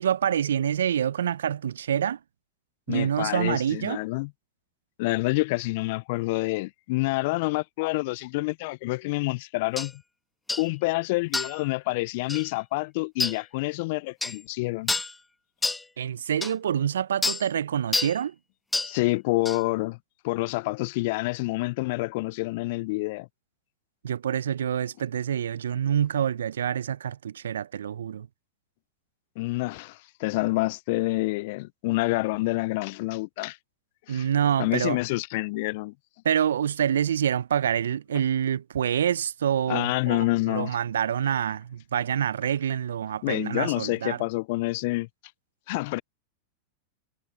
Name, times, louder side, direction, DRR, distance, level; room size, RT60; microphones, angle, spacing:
voice 1, 0.0-2.2 2.9-4.0 16.0-18.3 24.0-28.3 34.1-35.0 36.2-44.2, right 9 dB, 75° right, 0.6 m, -26 dB
voice 2, 2.9-4.3 5.0-10.0 10.6-14.9 18.8-20.0 20.2-23.3 29.4-33.6 34.1-34.3 34.6-35.9 39.7-40.7 43.2-45.1 45.7-46.0, left 23 dB, 55° left, 0.4 m, -27 dB
sound 1, 9.8-9.9 10.5-10.7 11.3-11.6 12.3-12.5 13.2-13.4 14.2-14.4 14.9-15.1 15.6-15.8 16.4-16.5 17.2-17.4 17.9-18.2 18.7-18.9 19.5-19.6, left 3 dB, 10° left, 1.4 m, -28 dB
hypercardioid pair, 95°, 0 cm